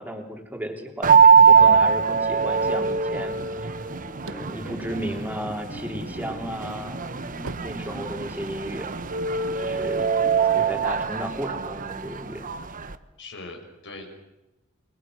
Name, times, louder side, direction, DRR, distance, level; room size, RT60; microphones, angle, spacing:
voice 1, 0.0-3.7 4.2-7.1 7.5-8.9 9.6-12.5, right 1 dB, 10° right, 2 dB, 3.5 m, -34 dB
sound 1, 1.0-12.9, right 6 dB, 40° right, 1.1 m, -22 dB
Marimba xylophone, 3.9-9.4, left 1 dB, 35° left, 2.0 m, -44 dB
sound 2, 4.2-5.9 6.4-8.6, right 2 dB, 60° right, 1.3 m, -41 dB
voice 2, 13.2-14.1, left 2 dB, 60° left, 4 dB, 6.0 m, -41 dB
29.5 x 21.5 x 6.3 m, 0.99 s
head